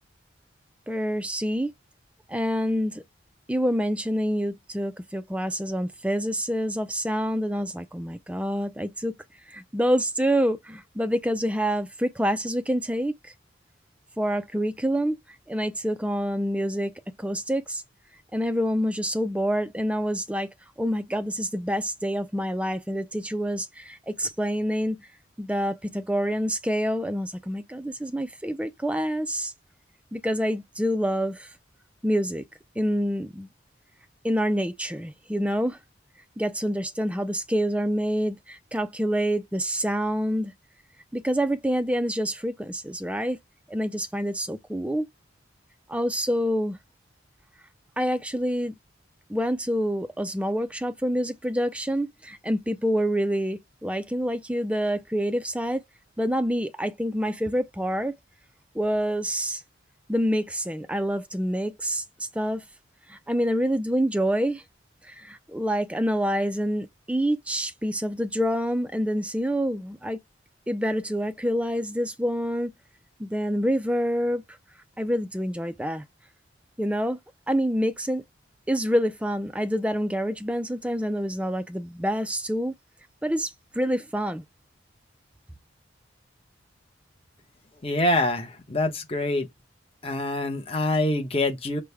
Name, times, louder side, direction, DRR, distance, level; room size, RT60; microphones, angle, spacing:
voice 1, 0.9-1.7 2.3-3.0 3.5-9.1 9.5-13.3 14.2-15.2 15.5-16.9 17.2-17.8 18.3-20.5 20.8-25.1 25.4-29.5 30.1-31.5 32.0-32.4 32.8-33.5 34.2-35.8 36.4-40.5 41.1-43.4 43.7-45.1 45.9-46.8 48.0-48.8 49.3-55.8 56.2-58.1 58.7-59.6 60.1-62.6 63.1-64.6 65.0-70.2 70.7-72.7 73.2-74.4 75.0-76.0 76.8-77.2 77.5-78.2 78.7-82.7 83.2-84.4, equal, 5° right, 0.4 m, -27 dB
voice 2, 87.8-89.5 90.0-91.8, left 1 dB, 30° left, 0.9 m, -25 dB
6.1 x 2.2 x 3.5 m
head